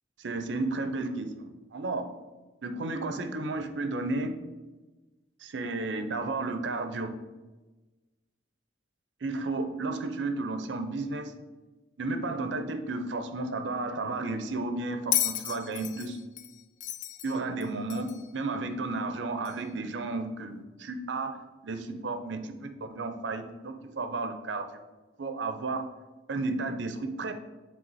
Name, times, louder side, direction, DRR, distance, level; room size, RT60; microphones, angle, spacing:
voice 1, 0.2-1.3 1.7-2.1 2.6-4.4 5.4-7.1 9.2-11.3 12.0-16.2 17.2-21.4 21.6-24.7 25.2-25.9 26.3-27.3, right 3 dB, 85° right, 8 dB, 0.6 m, -33 dB
Bell, 15.1-18.3 19.5-19.6, left 12 dB, 45° left, 0.3 m, -32 dB
7.6 x 3.4 x 4.1 m, 1.2 s
head